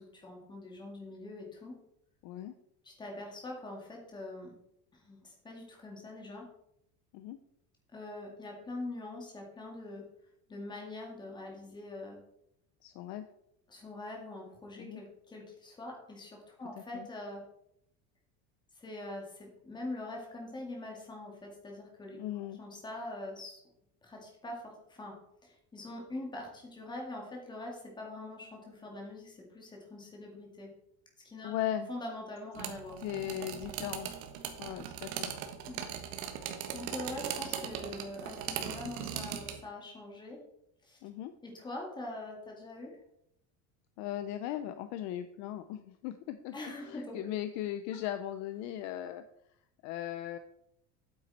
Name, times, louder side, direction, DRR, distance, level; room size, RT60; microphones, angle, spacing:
voice 1, 0.0-1.8 2.8-4.6 5.0-6.5 7.9-10.0 10.5-12.2 13.7-17.4 18.8-22.2 22.6-23.6 24.0-25.2 25.4-30.7 31.2-31.5 31.9-33.0 35.7-35.8 36.2-40.4 40.9-41.0 41.4-43.0 46.5-47.2, left 2 dB, 10° left, 0 dB, 2.2 m, -43 dB
voice 2, 2.2-2.5 7.1-7.4 12.8-13.2 14.8-15.0 16.9-17.1 22.1-22.6 31.4-31.9 33.0-34.1 34.6-35.3 41.0-41.3 44.0-46.5 46.8-49.2 49.8-50.4, left 12 dB, 50° left, 10 dB, 0.6 m, -38 dB
sound 1, 32.5-39.6, right 9 dB, 75° right, 1.5 m, -39 dB
8.8 x 8.7 x 4.2 m, 0.77 s
cardioid pair, 175°, 35 cm